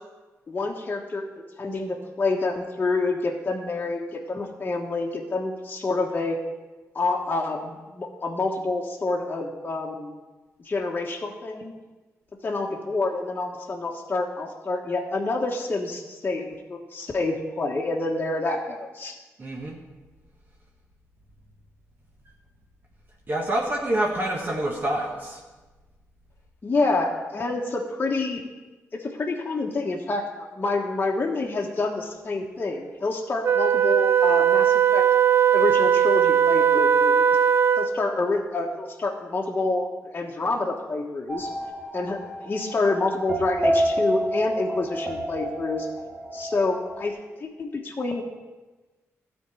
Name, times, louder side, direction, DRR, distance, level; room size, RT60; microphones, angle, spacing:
voice 1, 0.5-6.4 6.9-10.1 10.6-11.7 12.4-19.1 26.6-28.4 28.9-35.0 35.5-37.3 37.8-41.5 41.9-45.9 46.3-48.2, left 3 dB, 35° left, -1 dB, 1.3 m, -28 dB
voice 2, 19.4-19.8 23.3-25.4, right 1 dB, 35° right, -1 dB, 1.5 m, -27 dB
Wind instrument woodwind instrument, 33.4-38.1, right 8 dB, 55° right, 0.4 m, -19 dB
sound 1, 41.3-47.1, right 1 dB, 10° right, 2.1 m, -29 dB
13.0 x 4.5 x 8.3 m, 1.2 s
cardioid pair, 90°, 5 cm